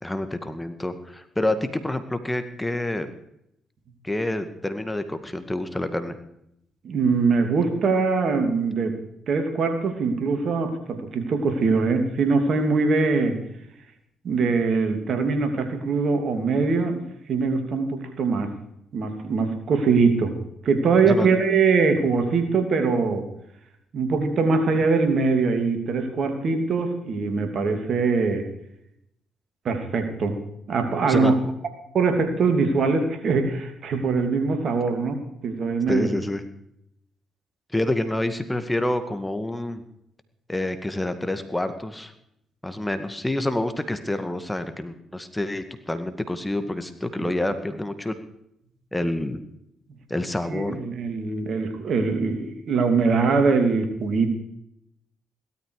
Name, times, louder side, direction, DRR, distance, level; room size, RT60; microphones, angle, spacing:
voice 1, 0.0-3.1 4.0-6.1 21.0-21.3 31.1-31.3 35.9-36.4 37.7-39.8 40.5-42.1 42.6-48.1 48.9-49.4 50.1-50.8, left 1 dB, 10° left, 9 dB, 1.9 m, -27 dB
voice 2, 6.8-9.0 9.3-13.4 14.2-17.0 17.3-18.5 18.9-20.3 20.6-23.2 23.9-28.4 29.6-30.4 30.7-31.3 31.9-35.1 35.4-36.1 47.2-47.3 50.5-54.4, right 4 dB, 60° right, 6 dB, 3.0 m, -22 dB
17.0 x 13.0 x 4.9 m, 0.76 s
hypercardioid pair, 55°, 0 cm